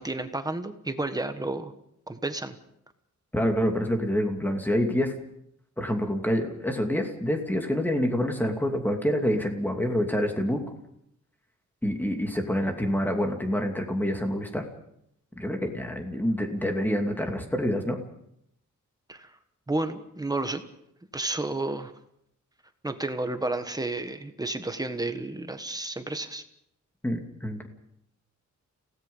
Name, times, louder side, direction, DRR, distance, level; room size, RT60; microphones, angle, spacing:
voice 1, 0.0-1.7 2.1-2.6 19.1-19.3 19.7-20.6 21.1-21.9 22.8-26.4, right 2 dB, 10° right, 8 dB, 1.4 m, -31 dB
voice 2, 3.3-5.1 5.8-10.6 11.8-14.6 15.4-18.0 27.0-27.7, equal, 5° left, 3 dB, 2.6 m, -27 dB
29.5 x 18.0 x 5.6 m, 0.76 s
wide cardioid pair, 170°, 31 cm